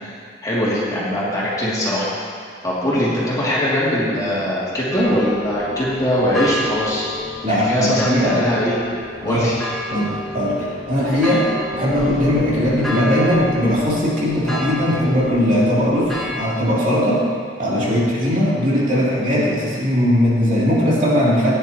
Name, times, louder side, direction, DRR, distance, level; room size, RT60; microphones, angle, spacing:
voice 1, 0.4-2.1 2.6-7.0 7.5-8.7 9.2-9.6, equal, 20° left, -9 dB, 2.7 m, -21 dB
sound 1, 4.9-16.5, left 1 dB, ahead, 1.9 m, -31 dB
voice 2, 7.4-8.4 9.2-9.4 9.9-11.4 11.7-17.2 17.6-21.5, equal, 50° right, -8 dB, 3.1 m, -19 dB
16.5 x 10.0 x 3.0 m, 2.2 s
head